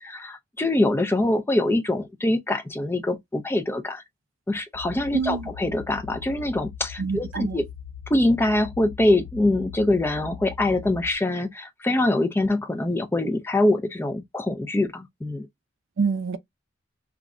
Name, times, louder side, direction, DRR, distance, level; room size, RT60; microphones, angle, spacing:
voice 1, 0.0-4.0 4.5-7.6 8.1-15.5, left 1 dB, 10° left, 0.4 m, -24 dB
sound 1, 4.7-11.2, left 8 dB, 85° left, 0.3 m, -40 dB
voice 2, 5.1-5.5 7.0-7.6 16.0-16.4, right 5 dB, 90° right, 0.4 m, -26 dB
2.4 x 2.0 x 3.5 m
head